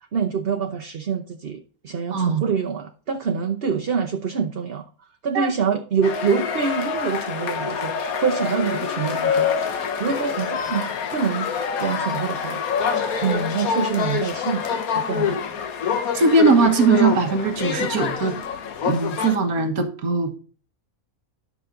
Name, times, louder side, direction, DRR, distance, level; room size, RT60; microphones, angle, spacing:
voice 1, 0.1-4.9 5.2-11.5 11.8-15.4, right 6 dB, 50° right, 5 dB, 1.0 m, -26 dB
voice 2, 2.1-2.4 5.3-5.5 16.1-18.3 18.8-20.4, right 4 dB, 85° right, 6 dB, 1.7 m, -20 dB
sound 1, 6.0-19.4, left 6 dB, 85° left, 1.6 m, -26 dB
11.5 x 6.2 x 3.8 m, 0.40 s
omnidirectional pair, 1.5 m